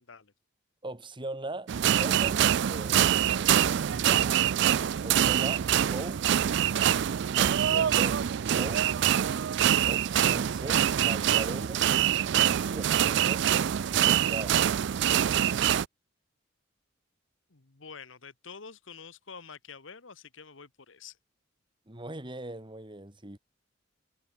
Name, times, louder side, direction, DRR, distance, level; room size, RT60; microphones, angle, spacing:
voice 1, 0.8-1.7 2.0-3.2 3.9-4.4 5.0-6.4 7.4-9.0 9.9-11.9 12.6-13.5 13.9-14.6 21.9-23.4, right 2 dB, 25° right, 2.5 m, -40 dB
sound 1, 1.7-15.8, right 10 dB, 60° right, 0.4 m, -25 dB
voice 2, 17.5-21.2, left 5 dB, 80° left, 1.5 m, -47 dB
head